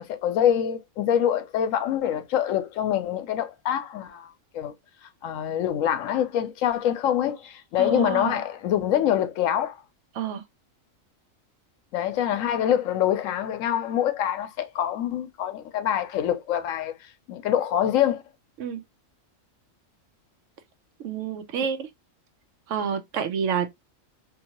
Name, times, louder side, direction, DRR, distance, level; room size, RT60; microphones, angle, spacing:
voice 1, 0.0-4.3 4.5-4.7 5.2-9.8 11.9-16.9 17.3-18.2, left 10 dB, 80° left, 0.9 m, -25 dB
voice 2, 7.8-8.4 10.1-10.4 18.6-18.8 21.0-21.9 22.7-23.7, right 7 dB, 70° right, 0.9 m, -28 dB
2.7 x 2.6 x 2.8 m
omnidirectional pair, 1.4 m